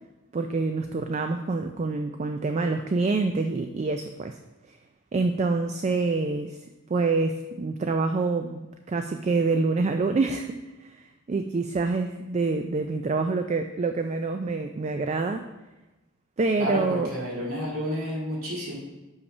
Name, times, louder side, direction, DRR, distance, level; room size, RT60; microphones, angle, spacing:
voice 1, 0.3-4.4 4.7-4.8 5.1-6.6 6.9-15.4 16.4-17.1, right 3 dB, 30° right, 6 dB, 0.3 m, -26 dB
voice 2, 16.6-18.8, equal, 75° right, -4 dB, 2.1 m, -30 dB
6.5 x 5.6 x 5.4 m, 1.1 s
head